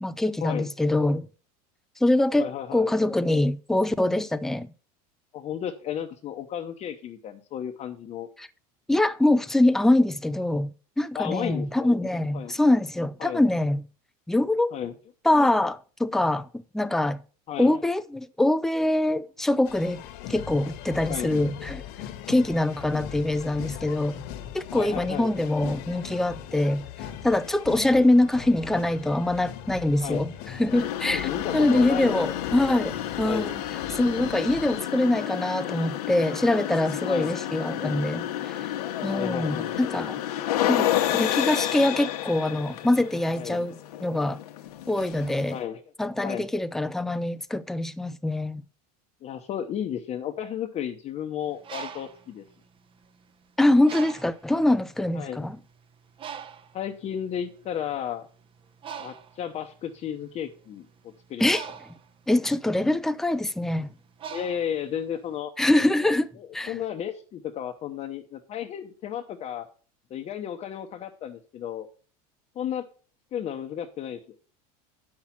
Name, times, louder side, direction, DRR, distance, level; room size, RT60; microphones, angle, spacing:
voice 1, 0.0-1.3 2.0-4.7 8.4-8.5 8.9-10.7 11.0-13.8 14.3-14.7 15.2-16.5 16.7-17.2 17.6-20.0 20.3-21.8 22.3-24.2 24.5-26.8 27.2-30.3 30.6-33.5 33.9-38.6 39.0-40.2 40.7-44.4 44.9-45.6 46.0-48.6 53.6-55.6 61.4-61.7 62.3-63.9 65.6-66.7, left 1 dB, ahead, 0.4 m, -24 dB
voice 2, 2.4-2.9 5.3-8.3 11.1-11.9 12.3-12.6 13.2-13.4 14.7-14.9 17.5-17.8 21.1-21.4 24.7-25.3 27.8-28.1 30.0-30.3 31.1-32.9 33.2-33.5 37.0-37.3 37.8-38.0 39.1-39.7 43.4-43.6 45.5-45.8 46.2-46.4 49.2-52.4 55.1-55.5 56.7-58.3 59.0-61.5 64.3-65.5 66.4-69.7 70.1-71.9 72.6-72.8 73.3-74.2, left 9 dB, 35° left, 0.8 m, -33 dB
sound 1, 19.6-34.8, left 10 dB, 60° left, 1.3 m, -40 dB
sound 2, 30.7-45.6, left 12 dB, 85° left, 1.1 m, -30 dB
Bird, 51.4-53.3 53.8-54.5 55.2-55.4 55.6-65.3, right 7 dB, 25° right, 0.7 m, -42 dB
8.7 x 6.0 x 5.7 m
supercardioid pair, 130°, 19 cm